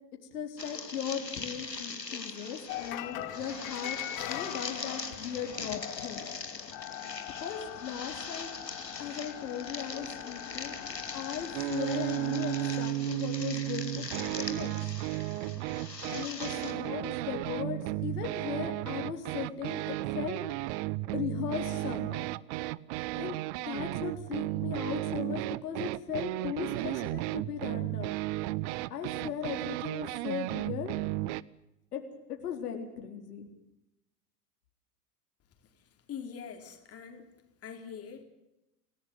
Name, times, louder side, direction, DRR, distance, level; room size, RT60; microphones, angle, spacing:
voice 1, 0.3-4.0 4.3-6.3 7.4-8.5 9.0-10.8 11.1-14.8 16.1-20.4 21.1-22.2 23.2-23.4 23.7-28.1 28.9-30.9 31.9-32.0 32.3-33.5, left 8 dB, 70° left, 3 dB, 4.4 m, -37 dB
sound 1, 0.6-16.7, left 4 dB, 90° left, 2.6 m, -42 dB
sound 2, 2.7-12.9, left 14 dB, 50° left, 2.6 m, -42 dB
sound 3, 11.5-31.4, right 18 dB, 45° right, 0.8 m, -34 dB
voice 2, 36.1-37.3 37.6-38.2, left 7 dB, 30° left, 5 dB, 3.9 m, -43 dB
28.0 x 16.5 x 8.2 m, 0.88 s
figure-of-eight pair, 85°, 48 cm